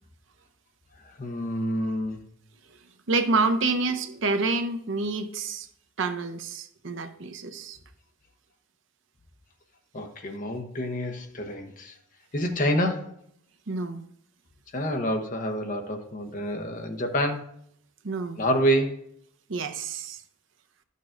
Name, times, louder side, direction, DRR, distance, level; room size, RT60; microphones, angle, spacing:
voice 1, 1.0-2.2 9.9-11.9 12.3-13.1 14.7-17.5 18.4-19.0, equal, 40° left, 0.9 m, -28 dB
voice 2, 3.1-5.7 6.0-7.8 13.7-14.0 18.0-18.4 19.5-20.2, right 3 dB, 65° right, 0.6 m, -28 dB
11.5 x 6.6 x 2.5 m
head